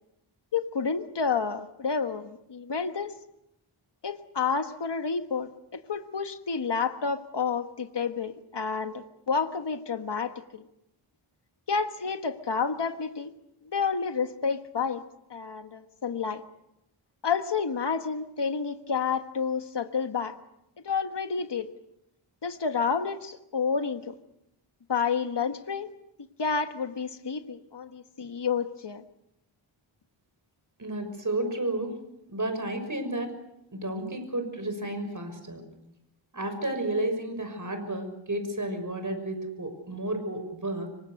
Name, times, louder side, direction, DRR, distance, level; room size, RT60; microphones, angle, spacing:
voice 1, 0.5-3.1 4.0-10.6 11.7-13.3 13.6-15.0 15.3-16.4 17.2-20.4 20.8-21.7 22.4-24.1 24.9-25.9 26.4-29.0, left 5 dB, 55° left, 8 dB, 1.5 m, -30 dB
voice 2, 30.8-32.0 32.3-33.4 33.7-35.6 36.3-40.9, right 1 dB, 40° right, 7 dB, 6.3 m, -32 dB
26.0 x 24.5 x 6.6 m, 0.83 s
wide cardioid pair, 65°, 49 cm